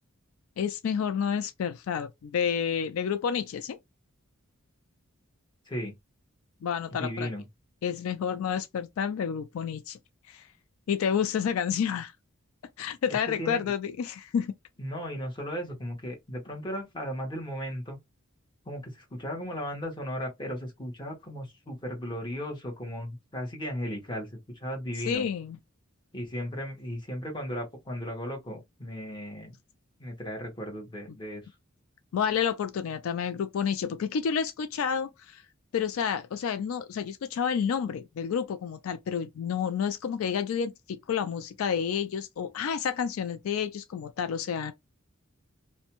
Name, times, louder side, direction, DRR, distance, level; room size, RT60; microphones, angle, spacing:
voice 1, 0.6-3.8 6.6-7.3 7.8-10.0 10.3-10.5 10.9-12.1 12.8-14.6 25.0-25.6 32.1-35.4 35.7-44.7, left 7 dB, 75° left, 0.3 m, -30 dB
voice 2, 7.0-7.4 13.4-13.7 14.8-18.0 18.7-24.3 24.6-25.3 26.1-29.5 30.0-31.4, equal, 20° left, 1.0 m, -36 dB
2.5 x 2.2 x 2.8 m
head